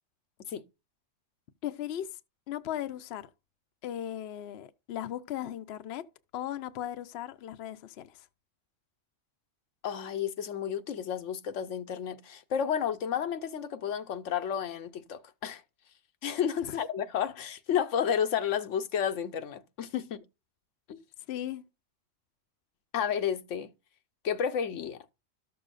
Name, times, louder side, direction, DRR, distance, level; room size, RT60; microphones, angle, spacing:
voice 1, 1.6-2.1 2.5-3.3 3.8-6.0 6.3-8.3 16.6-16.8 21.3-21.6, left 11 dB, 65° left, 0.8 m, -37 dB
voice 2, 9.8-15.6 16.2-20.2 20.9-21.0 22.9-23.7 24.2-25.0, left 8 dB, 80° left, 1.1 m, -31 dB
13.0 x 6.8 x 2.5 m
omnidirectional pair, 1.3 m